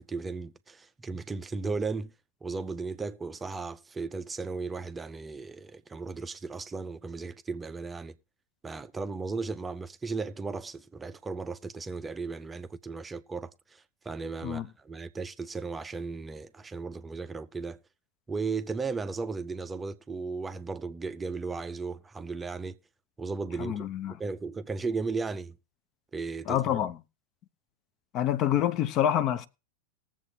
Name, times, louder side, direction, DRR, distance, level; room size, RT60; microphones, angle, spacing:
voice 1, 0.0-2.1 2.4-8.2 8.6-17.8 18.3-22.7 23.2-23.9 24.2-25.6 26.1-26.7, right 4 dB, 15° right, 0.5 m, -35 dB
voice 2, 23.6-24.1 26.5-27.0 28.1-29.5, left 11 dB, 35° left, 0.6 m, -27 dB
20.0 x 7.4 x 2.8 m
figure-of-eight pair, 90°, 0 cm